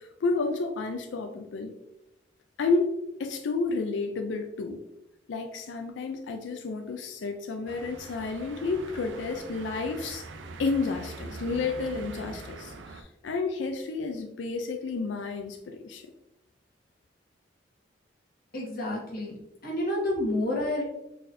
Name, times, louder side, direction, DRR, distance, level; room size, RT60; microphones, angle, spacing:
voice 1, 0.0-1.7 2.6-4.8 5.3-10.2 10.6-16.0, left 3 dB, 75° left, 4 dB, 0.4 m, -31 dB
sound 1, 7.7-13.0, right 3 dB, 80° right, 0.4 m, -43 dB
voice 2, 18.5-20.8, left 1 dB, 55° left, -2 dB, 1.3 m, -29 dB
4.1 x 4.1 x 2.6 m, 0.89 s
head